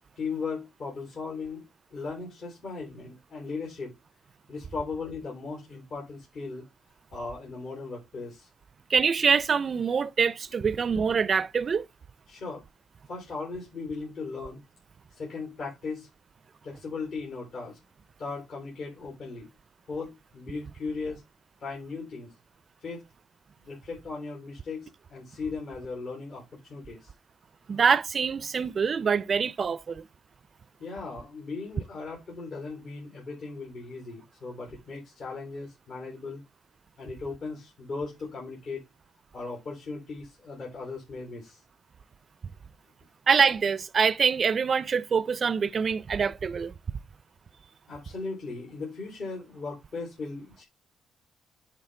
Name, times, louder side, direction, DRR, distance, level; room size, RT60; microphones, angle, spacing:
voice 1, 0.2-1.6 1.9-3.9 4.5-6.6 7.1-8.5 10.7-10.8 12.3-12.6 13.1-14.6 15.2-16.1 16.6-17.8 18.2-19.5 19.9-21.2 21.6-22.3 22.8-23.0 23.7-27.1 30.8-36.4 37.0-38.8 39.3-41.6 47.9-50.6, left 4 dB, 60° left, 3.4 m, -37 dB
voice 2, 8.9-11.9 27.7-30.1 43.3-46.7, right 6 dB, 45° right, 0.4 m, -25 dB
9.8 x 4.2 x 3.2 m
cardioid pair, 90°, 0 cm